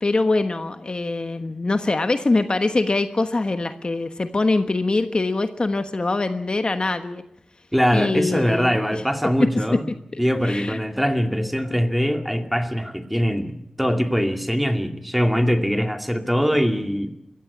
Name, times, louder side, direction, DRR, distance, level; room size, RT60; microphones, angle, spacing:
voice 1, 0.0-7.2 7.9-9.0 10.4-10.8, left 3 dB, 45° left, 8 dB, 1.2 m, -23 dB
voice 2, 7.7-9.9 10.2-17.1, equal, ahead, 6 dB, 2.3 m, -22 dB
22.5 x 15.5 x 9.6 m, 0.81 s
wide cardioid pair, 75°, 2 cm